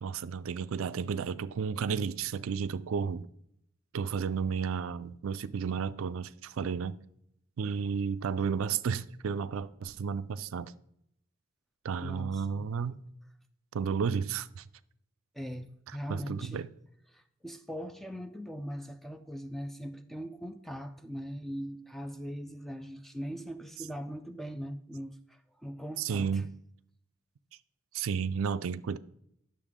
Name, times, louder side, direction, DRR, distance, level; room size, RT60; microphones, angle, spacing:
voice 1, 0.0-3.3 3.9-7.0 7.6-10.7 11.8-13.0 13.7-14.7 16.1-16.7 26.0-26.5 27.9-29.0, right 6 dB, 80° right, 0.4 m, -32 dB
voice 2, 12.0-12.7 15.3-16.6 17.1-26.4, equal, ahead, 0.3 m, -40 dB
9.9 x 6.6 x 3.6 m
head